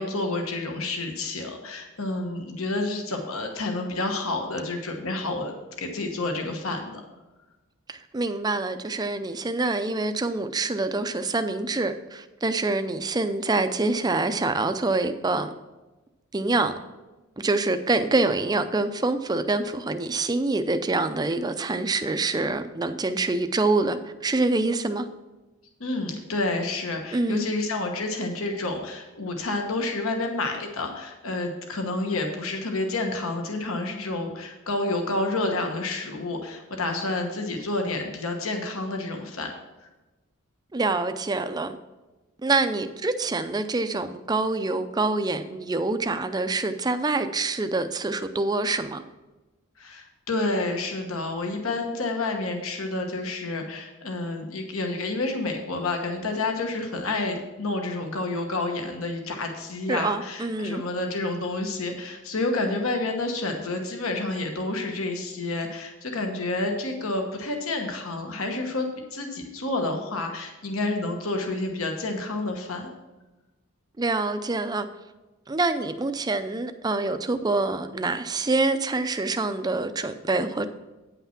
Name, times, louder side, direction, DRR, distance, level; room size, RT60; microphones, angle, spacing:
voice 1, 0.0-7.0 25.8-39.5 49.8-72.9, left 2 dB, 70° left, 3 dB, 1.1 m, -29 dB
voice 2, 7.9-15.5 16.3-16.7 17.4-25.1 27.1-27.5 40.7-41.8 42.4-49.0 59.9-60.8 74.0-74.9 75.5-80.7, right 3 dB, 20° right, 9 dB, 0.4 m, -26 dB
9.4 x 5.7 x 5.8 m, 1.1 s
head